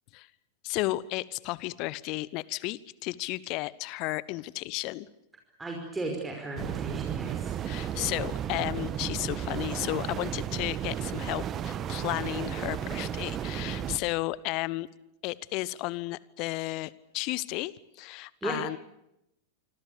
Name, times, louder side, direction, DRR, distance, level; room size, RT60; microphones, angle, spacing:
voice 1, 0.6-5.1 7.6-14.9 15.2-18.8, left 20 dB, 40° left, 21 dB, 1.1 m, -33 dB
voice 2, 5.6-7.6 18.4-18.6, right 2 dB, 10° right, 1 dB, 5.3 m, -35 dB
sound 1, 6.6-14.0, right 9 dB, 30° right, 1.9 m, -33 dB
26.5 x 26.0 x 6.9 m, 0.82 s
figure-of-eight pair, 90°, 0 cm